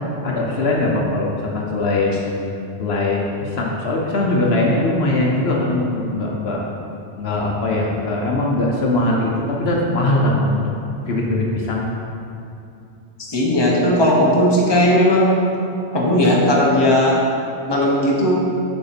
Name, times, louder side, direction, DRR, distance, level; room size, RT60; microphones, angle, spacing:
voice 1, 0.0-6.6 7.2-10.6 11.0-11.9, left 2 dB, 65° left, -2 dB, 1.1 m, -21 dB
voice 2, 13.3-15.4 15.9-17.2 17.7-18.4, left 1 dB, 25° left, -3 dB, 1.0 m, -16 dB
6.6 x 6.0 x 4.1 m, 2.6 s
omnidirectional pair, 1.2 m